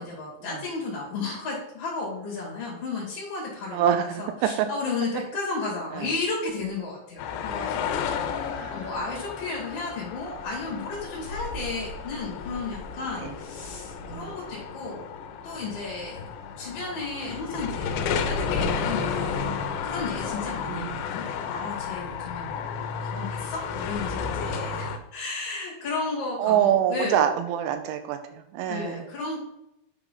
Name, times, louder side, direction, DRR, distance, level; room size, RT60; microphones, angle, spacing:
voice 1, 0.0-3.8 4.2-15.0 15.4-16.2 16.6-19.5 19.8-27.2 28.7-29.4, left 3 dB, 45° left, -5 dB, 2.5 m, -33 dB
voice 2, 3.7-4.7 5.9-6.1 8.5-8.8 13.2-13.3 14.1-14.3 20.6-21.0 26.4-29.0, right 9 dB, 85° right, 7 dB, 3.0 m, -25 dB
sound 1, 7.2-25.0, left 6 dB, 80° left, 2.8 m, -32 dB
9.2 x 3.8 x 5.4 m, 0.82 s
omnidirectional pair, 5.4 m